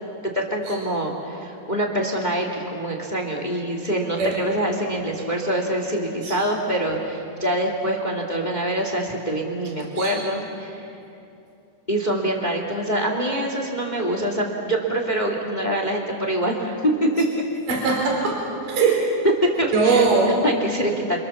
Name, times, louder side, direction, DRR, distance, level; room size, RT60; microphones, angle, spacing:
voice 1, 0.3-10.9 11.9-17.2 19.4-20.0 20.4-21.2, right 1 dB, 25° left, 2 dB, 0.8 m, -25 dB
voice 2, 17.7-18.4 18.7-19.0 19.7-20.4, right 4 dB, 45° right, -1 dB, 5.9 m, -20 dB
29.0 x 26.5 x 7.2 m, 2.7 s
omnidirectional pair, 5.7 m